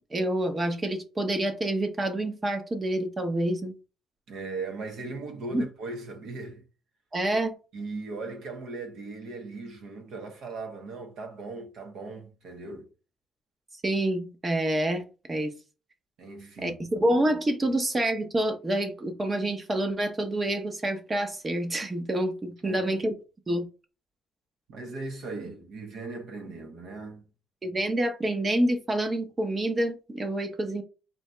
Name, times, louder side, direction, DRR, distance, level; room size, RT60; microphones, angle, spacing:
voice 1, 0.1-3.7 5.5-5.7 7.1-7.5 13.8-15.5 16.6-23.1 23.5-23.7 27.6-30.8, right 1 dB, 20° right, 0.7 m, -27 dB
voice 2, 4.3-6.6 7.7-12.9 16.2-16.8 22.6-23.0 24.7-27.2, right 3 dB, 65° right, 1.0 m, -38 dB
4.2 x 2.8 x 3.3 m
cardioid pair, 160°, 0 cm